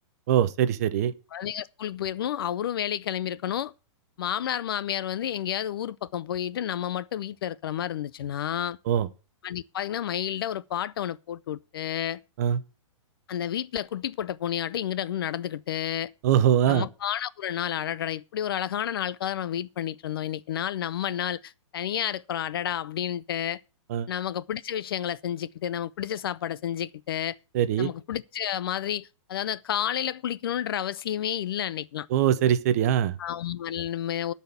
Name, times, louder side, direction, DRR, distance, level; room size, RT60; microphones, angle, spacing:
voice 1, 0.3-1.1 8.9-9.1 12.4-12.6 16.2-16.9 23.9-24.1 27.5-27.9 32.1-33.2, right 10 dB, 30° right, 0.6 m, -22 dB
voice 2, 1.3-3.7 4.2-8.8 9.4-12.2 13.3-16.1 16.7-23.6 24.1-27.4 27.8-32.1 33.2-34.3, left 10 dB, 45° left, 0.4 m, -30 dB
12.5 x 4.2 x 7.8 m
hypercardioid pair, 170°, 16 cm